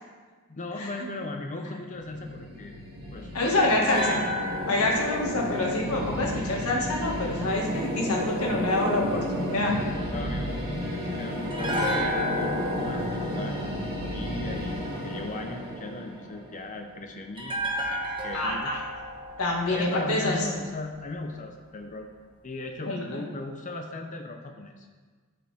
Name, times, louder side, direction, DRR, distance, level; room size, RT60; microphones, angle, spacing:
voice 1, 0.5-2.7 3.1-3.8 4.8-4.9 10.1-18.8 19.7-22.1 22.4-24.9, left 2 dB, 35° left, 3 dB, 0.6 m, -38 dB
sound 1, 1.9-17.0, equal, 45° right, 2.2 m, -33 dB
voice 2, 3.3-4.3 4.7-9.8 18.3-18.8 19.4-20.4 22.9-23.2, left 2 dB, 75° left, -2 dB, 1.8 m, -26 dB
sound 2, 3.9-7.1 11.5-14.7 17.4-20.6 20.8-21.0, equal, 20° right, 1.3 m, -33 dB
14.0 x 5.2 x 3.5 m, 1.5 s
head